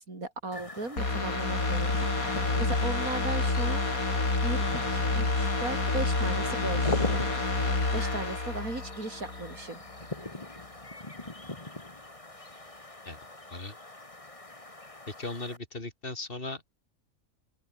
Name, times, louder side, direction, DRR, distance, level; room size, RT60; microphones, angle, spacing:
voice 1, 0.0-3.9 4.4-7.2 7.9-9.8, right 2 dB, 80° right, 5.0 m, -37 dB
sound 1, 0.5-15.6, left 2 dB, 25° left, 2.5 m, -41 dB
sound 2, 1.0-9.6 10.0-10.1, left 3 dB, 80° left, 4.7 m, -28 dB
voice 2, 15.1-16.6, left 2 dB, 40° left, 4.2 m, -37 dB
open air
omnidirectional pair, 1.5 m